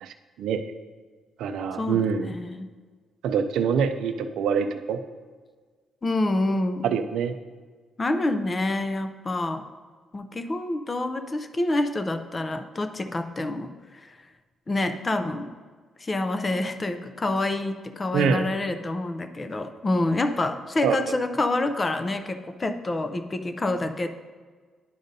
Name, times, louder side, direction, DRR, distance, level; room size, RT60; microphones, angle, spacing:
voice 1, 0.0-0.6 1.4-2.3 3.2-5.0 6.8-7.3 18.1-18.5 20.8-21.2, right 6 dB, 85° right, 8 dB, 0.4 m, -25 dB
voice 2, 1.7-2.7 6.0-6.9 8.0-9.7 10.1-14.1 14.7-15.6 16.0-24.1, left 2 dB, 25° left, 9 dB, 0.4 m, -27 dB
10.5 x 5.1 x 2.7 m, 1.5 s
cardioid pair, 140°, 0 cm